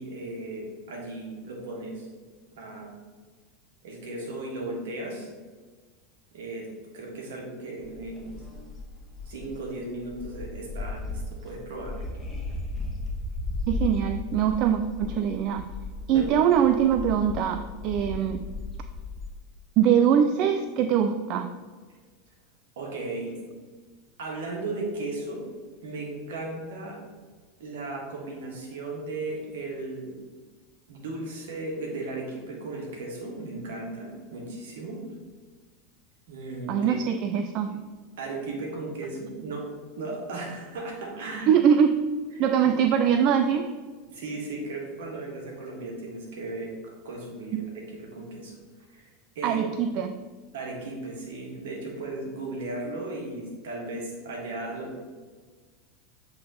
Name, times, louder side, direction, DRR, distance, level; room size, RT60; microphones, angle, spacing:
voice 1, 0.0-2.1 2.5-2.9 3.8-5.3 6.3-6.7 6.9-8.4 9.3-12.0 16.1-16.3 22.8-23.4 24.2-25.4 25.8-27.0 27.6-30.1 30.9-35.0 36.3-37.0 38.2-41.5 42.6-42.7 44.1-48.6 48.9-49.7 50.5-55.0, right 2 dB, 70° right, 0 dB, 1.6 m, -36 dB
sound 1, 7.8-19.4, left 3 dB, 20° left, 1.4 m, -36 dB
voice 2, 13.7-15.6 16.1-18.4 19.8-21.5 36.7-37.8 41.5-41.9 42.4-43.7 47.5-47.7 49.4-50.1, right 8 dB, 50° right, 8 dB, 0.3 m, -23 dB
7.6 x 3.6 x 3.8 m, 1.4 s
hypercardioid pair, 85°, 0 cm